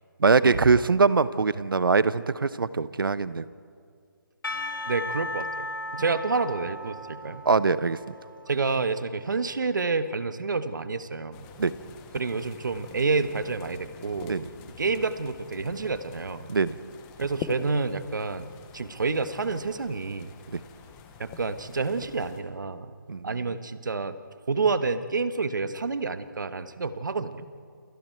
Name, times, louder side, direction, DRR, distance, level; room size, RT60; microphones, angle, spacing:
voice 1, 0.2-3.4 7.4-8.1 11.6-11.7 14.3-14.4 16.5-16.8 20.5-20.6 23.1-23.4, right 4 dB, 75° right, 16 dB, 0.9 m, -22 dB
Percussion / Church bell, 4.4-9.7, left 1 dB, 70° left, 2.0 m, -37 dB
voice 2, 4.9-5.7 5.9-7.4 8.5-11.5 12.1-14.4 14.8-16.5 17.2-20.3 21.2-22.9 23.2-24.2 24.5-27.5, right 4 dB, 60° right, 12 dB, 1.3 m, -29 dB
sound 1, 11.3-22.4, left 6 dB, 5° left, 0.5 m, -45 dB
28.5 x 27.5 x 4.6 m, 2.2 s
hypercardioid pair, 170°, 12 cm